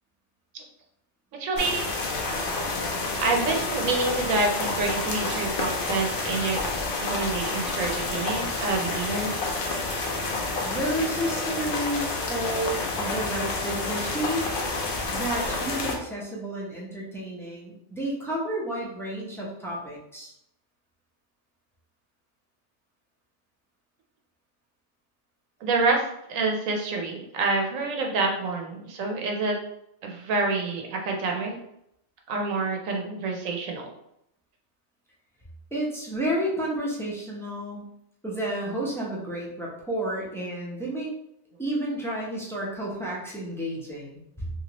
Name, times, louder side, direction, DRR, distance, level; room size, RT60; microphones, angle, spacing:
voice 1, 1.3-1.9 3.2-6.6 7.1-9.6 25.6-29.6 30.0-31.5 32.3-33.9, right 3 dB, 90° right, 1 dB, 1.1 m, -27 dB
sound 1, 1.5-16.0, left 3 dB, 55° left, 0.7 m, -29 dB
voice 2, 10.6-14.4 14.8-20.3 35.7-37.9 38.2-41.1 41.6-44.5, right 1 dB, 5° left, -5 dB, 0.5 m, -31 dB
3.2 x 2.8 x 2.9 m, 0.77 s
omnidirectional pair, 1.3 m